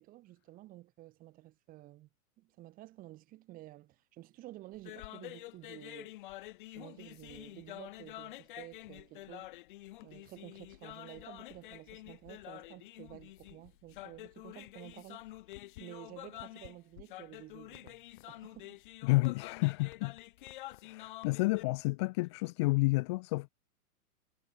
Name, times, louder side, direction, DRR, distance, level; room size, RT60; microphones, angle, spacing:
voice 1, 0.0-2.1 2.4-6.2 6.8-9.5 10.0-15.2 15.8-18.8, right 16 dB, 20° right, 5.8 m, -52 dB
sound 1, 4.7-21.6, left 16 dB, 35° left, 2.4 m, -48 dB
voice 2, 19.0-20.2 20.8-23.5, left 23 dB, 20° left, 0.9 m, -30 dB
hypercardioid pair, 170°, 45 cm